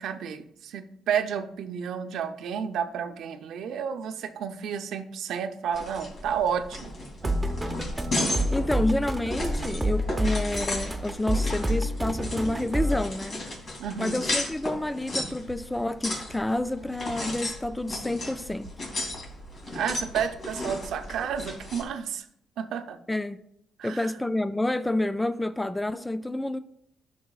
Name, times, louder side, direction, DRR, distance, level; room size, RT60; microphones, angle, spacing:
voice 1, 0.0-6.9 7.2-7.3 13.8-14.2 19.7-22.3 22.6-23.0 23.8-24.1, right 7 dB, 75° right, 8 dB, 0.6 m, -31 dB
sound 1, 5.7-21.8, left 1 dB, 50° left, 2.9 m, -34 dB
sound 2, 7.2-13.0, right 1 dB, 15° right, 0.9 m, -29 dB
voice 2, 8.5-13.4 14.0-18.7 23.1-23.4 23.8-26.6, left 1 dB, 10° left, 11 dB, 0.3 m, -29 dB
11.0 x 6.2 x 2.3 m, 0.74 s
cardioid pair, 90°, 0 cm